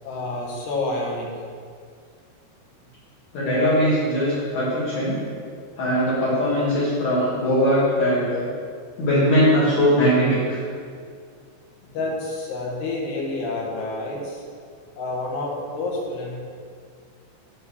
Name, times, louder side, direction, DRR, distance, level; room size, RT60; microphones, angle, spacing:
voice 1, 0.0-1.4 11.8-14.4 15.0-16.4, left 2 dB, 70° left, -2 dB, 3.4 m, -29 dB
voice 2, 3.3-5.2 5.8-8.4 9.0-10.6, equal, 50° left, -9 dB, 3.1 m, -20 dB
11.5 x 4.5 x 7.0 m, 2.1 s
omnidirectional pair, 5.3 m